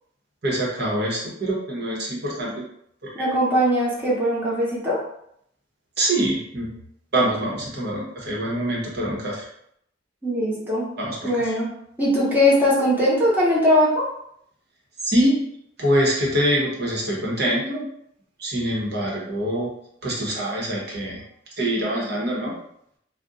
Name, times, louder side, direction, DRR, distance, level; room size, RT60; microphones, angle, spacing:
voice 1, 0.4-2.6 3.0-3.3 6.0-6.7 7.1-9.5 11.0-11.6 15.0-15.4 15.8-17.8 18.4-19.7 20.0-21.2 21.6-22.5, right 1 dB, 60° right, -3 dB, 1.0 m, -24 dB
voice 2, 3.1-5.0 10.2-10.9 11.2-11.7 12.0-14.1, equal, 10° right, -6 dB, 0.9 m, -20 dB
2.5 x 2.2 x 3.8 m, 0.72 s
head